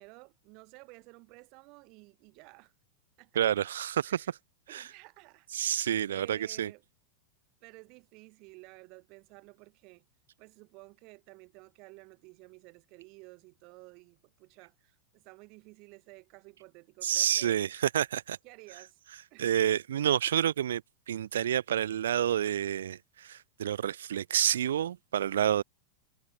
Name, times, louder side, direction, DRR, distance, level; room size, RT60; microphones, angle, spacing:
voice 1, 0.0-2.7 3.2-3.4 4.0-4.3 4.7-6.8 7.6-10.0 10.4-17.6 18.4-19.0 19.3-19.6, right 27 dB, 40° right, 4.0 m, -53 dB
voice 2, 3.4-4.2 4.7-4.8 5.5-6.7 17.0-17.7 17.9-18.4 19.4-20.8 21.1-23.0 23.3-25.6, right 10 dB, 65° right, 0.4 m, -28 dB
figure-of-eight pair, 90°, 0 cm